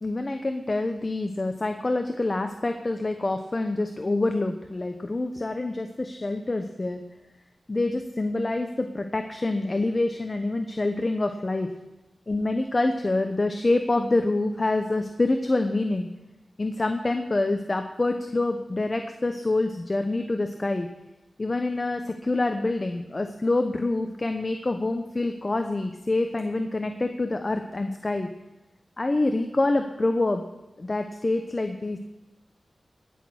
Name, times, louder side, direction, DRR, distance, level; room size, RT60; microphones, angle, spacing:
voice 1, 0.0-7.0 7.7-11.7 12.3-16.1 16.6-20.9 21.4-28.3 29.0-30.4 30.8-32.0, left 2 dB, 35° left, 6 dB, 0.9 m, -26 dB
18.5 x 6.2 x 6.3 m, 1.0 s
cardioid pair, 65°, 0 cm